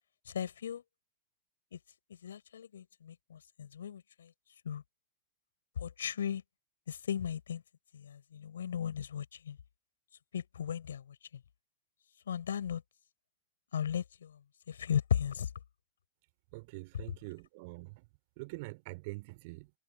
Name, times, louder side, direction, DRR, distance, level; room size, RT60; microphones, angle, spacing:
voice 1, 0.3-0.8 1.7-1.8 2.2-4.3 4.6-4.8 5.8-6.4 6.9-7.6 7.9-9.6 10.3-11.1 12.3-12.8 13.7-14.4 14.7-15.5, left 8 dB, 65° left, 4.9 m, -36 dB
voice 2, 16.5-18.0 18.4-19.8, right 25 dB, 50° right, 2.9 m, -45 dB
figure-of-eight pair, 90°, 0 cm